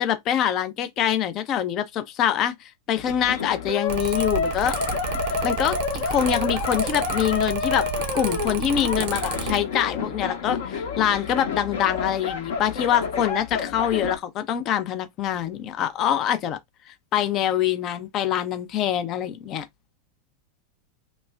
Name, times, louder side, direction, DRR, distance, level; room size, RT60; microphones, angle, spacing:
voice 1, 0.0-4.8 5.4-7.9 8.1-16.6 16.9-19.7, left 10 dB, 35° left, 0.4 m, -25 dB
sound 1, 3.0-14.2, left 5 dB, 55° left, 0.8 m, -29 dB
Mechanical fan, 3.9-9.6, right 9 dB, 50° right, 0.6 m, -31 dB
3.0 x 2.1 x 2.4 m
figure-of-eight pair, 90°, 0 cm